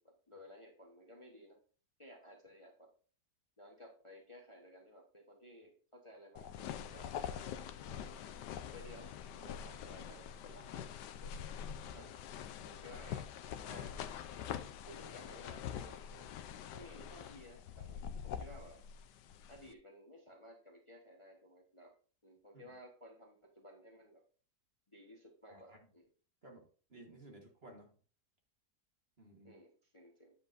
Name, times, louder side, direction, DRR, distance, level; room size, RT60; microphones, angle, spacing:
voice 1, 0.0-1.6 2.0-2.9 3.6-7.1 7.5-8.1 8.7-9.1 9.4-10.9 11.2-11.5 11.9-12.1 12.6-13.3 13.7-14.0 14.9-16.2 16.7-18.8 19.5-21.9 22.2-24.2 24.9-26.0 29.4-30.3, equal, 20° left, 0 dB, 1.1 m, -56 dB
sound 1, 6.4-19.7, left 8 dB, 80° left, 1.2 m, -45 dB
voice 2, 26.4-27.9 29.2-29.6, right 1 dB, 40° right, 1 dB, 1.6 m, -56 dB
9.6 x 7.4 x 2.6 m, 0.41 s
omnidirectional pair, 1.8 m